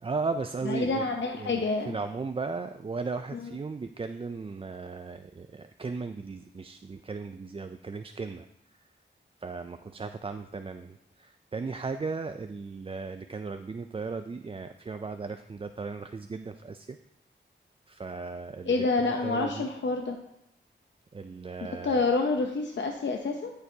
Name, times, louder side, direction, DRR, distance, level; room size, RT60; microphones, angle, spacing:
voice 1, 0.0-1.0 1.4-8.8 9.4-17.0 17.9-19.7 21.1-22.0, right 4 dB, 30° right, 8 dB, 0.3 m, -36 dB
voice 2, 0.7-2.0 3.3-3.5 18.7-20.2 21.8-23.5, left 3 dB, 75° left, 3 dB, 0.7 m, -28 dB
13.5 x 6.7 x 2.8 m, 0.80 s
wide cardioid pair, 75°, 19 cm